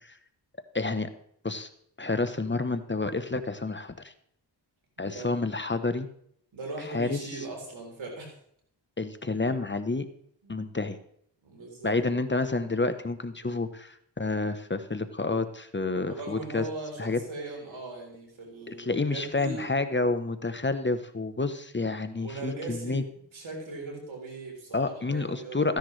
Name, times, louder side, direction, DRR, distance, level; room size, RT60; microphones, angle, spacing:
voice 1, 0.7-1.1 1.4-1.7 2.0-4.1 5.0-6.1 6.9-7.2 9.0-10.1 10.5-11.0 11.8-16.6 17.0-17.2 18.7-23.0 24.7-25.8, left 3 dB, 25° left, 10 dB, 0.9 m, -29 dB
voice 2, 5.0-5.4 6.5-8.3 10.4-10.7 11.4-12.0 16.0-19.8 22.2-25.8, right 2 dB, 90° right, 0 dB, 3.9 m, -39 dB
14.5 x 10.5 x 3.3 m, 0.67 s
cardioid pair, 45°, 45 cm